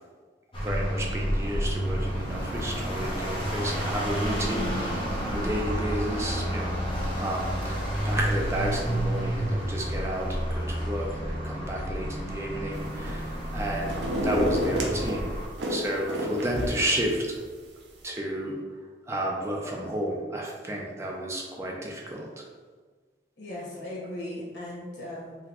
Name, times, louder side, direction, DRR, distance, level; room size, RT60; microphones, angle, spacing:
sound 1, 0.5-15.5, equal, 30° left, 0.8 m, -30 dB
voice 1, 0.6-6.8 7.1-15.3 15.7-17.3 18.0-18.6 19.1-22.4, right 1 dB, 15° right, -1 dB, 0.3 m, -32 dB
sound 2, 12.7-13.3 13.6-15.2 15.6-17.0 17.4-17.5, equal, 85° right, 0.5 m, -29 dB
voice 2, 23.4-25.4, left 1 dB, 85° left, -6 dB, 1.2 m, -37 dB
3.9 x 2.1 x 2.9 m, 1.5 s
head